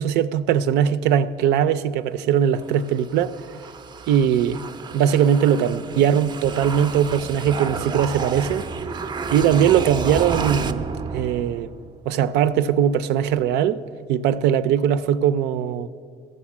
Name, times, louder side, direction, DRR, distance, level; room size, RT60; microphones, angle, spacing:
voice 1, 0.0-3.4 4.1-4.6 4.9-8.7 9.3-10.8 11.1-11.7 12.1-13.8 14.1-15.9, right 9 dB, 85° right, 0.5 m, -20 dB
sound 1, 2.6-12.0, right 5 dB, 25° right, 0.5 m, -31 dB
13.5 x 6.7 x 7.2 m
cardioid pair, 110°, 17 cm